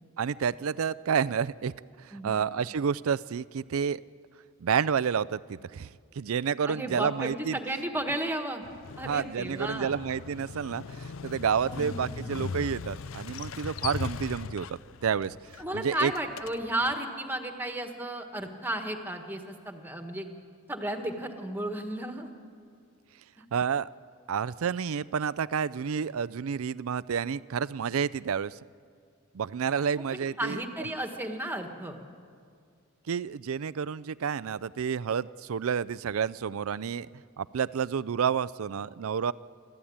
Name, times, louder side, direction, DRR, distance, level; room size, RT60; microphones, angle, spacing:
voice 1, 0.2-1.7 2.0-4.0 4.6-7.6 9.0-16.1 23.5-23.9 24.3-28.6 29.3-30.6 33.1-37.1 37.4-39.3, right 7 dB, 75° right, 17 dB, 0.4 m, -30 dB
voice 2, 6.7-8.6 9.0-9.9 11.6-12.3 15.6-20.3 20.7-22.3 30.1-32.0, right 1 dB, 10° right, 5 dB, 1.6 m, -33 dB
Motorcycle, 8.6-17.0, left 5 dB, 65° left, 0.5 m, -39 dB
28.0 x 13.0 x 8.7 m, 2.2 s
head